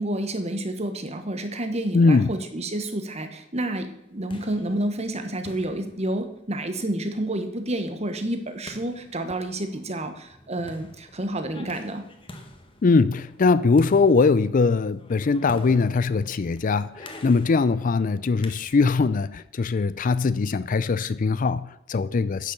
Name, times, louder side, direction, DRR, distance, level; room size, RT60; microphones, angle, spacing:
voice 1, 0.0-12.1, right 1 dB, 35° right, 8 dB, 1.2 m, -29 dB
voice 2, 1.9-2.3 12.8-22.5, left 4 dB, 45° left, 15 dB, 0.4 m, -21 dB
sound 1, 3.9-19.1, left 1 dB, 25° left, 1.3 m, -47 dB
9.9 x 6.7 x 6.9 m, 0.83 s
head